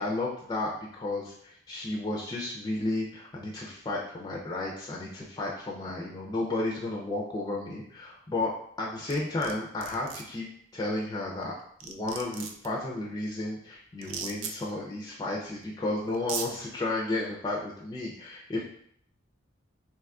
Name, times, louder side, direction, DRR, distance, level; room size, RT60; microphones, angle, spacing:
voice 1, 0.0-8.5 8.8-10.5 10.7-11.6 11.8-18.6, left 2 dB, 20° left, -3 dB, 0.3 m, -33 dB
sound 1, 9.1-9.5 9.8-10.2 11.4-11.5 11.8-12.7 14.0-14.5 15.6-15.7 16.1-16.5, right 7 dB, 70° right, 0.4 m, -36 dB
2.9 x 2.3 x 3.5 m, 0.65 s
head